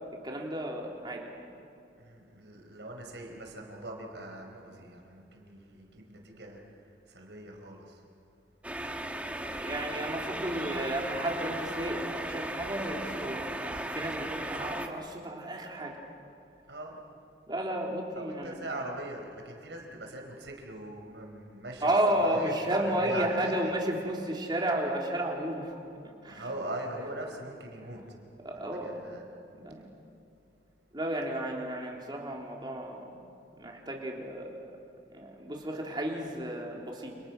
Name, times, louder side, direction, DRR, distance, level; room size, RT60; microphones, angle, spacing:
voice 1, 0.2-1.3 9.5-16.0 17.5-18.5 21.8-25.8 26.2-26.5 28.4-29.0 29.5-29.8 30.9-33.1 33.6-34.7 35.1-37.2, right 1 dB, 25° right, -1 dB, 3.7 m, -32 dB
voice 2, 2.0-6.7 7.1-8.0 16.7-17.0 18.2-23.7 26.3-28.0 28.7-29.2, right 1 dB, 80° right, 2 dB, 4.9 m, -41 dB
sound 1, 8.6-14.9, right 1 dB, 10° right, 1.5 m, -36 dB
29.5 x 29.0 x 6.2 m, 2.6 s
head